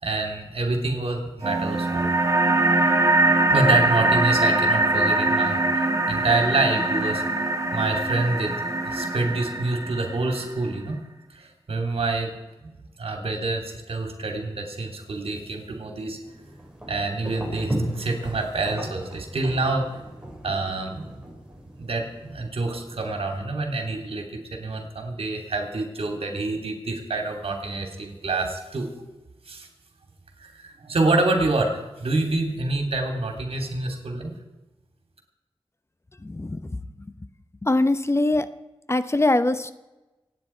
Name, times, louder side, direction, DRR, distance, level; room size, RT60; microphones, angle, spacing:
voice 1, 0.0-2.1 3.5-7.2 7.7-8.5 8.8-11.0 11.3-12.3 12.6-16.2 16.9-20.0 20.4-21.1 21.8-24.3 24.5-28.9 29.4-29.7 30.4-34.3, right 2 dB, 85° right, 3 dB, 2.9 m, -27 dB
sound 1, 1.4-10.4, right 2 dB, 35° right, 2.2 m, -22 dB
sound 2, 16.2-23.4, right 1 dB, 10° right, 4.7 m, -36 dB
voice 2, 36.2-36.8 37.6-38.5 38.9-39.7, left 2 dB, 30° left, 12 dB, 0.8 m, -22 dB
25.5 x 9.7 x 4.5 m, 1.1 s
wide cardioid pair, 65°, 10 cm